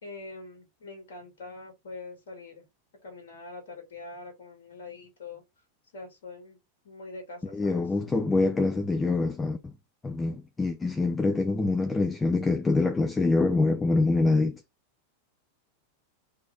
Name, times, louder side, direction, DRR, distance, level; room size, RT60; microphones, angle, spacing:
voice 1, 0.0-2.6 3.0-5.4 5.9-6.6 6.8-7.8 10.2-10.4, left 3 dB, 75° left, 2.1 m, -44 dB
voice 2, 7.5-9.7 10.0-14.6, left 3 dB, 15° left, 0.6 m, -25 dB
3.6 x 3.4 x 3.9 m
hypercardioid pair, 100°, 0 cm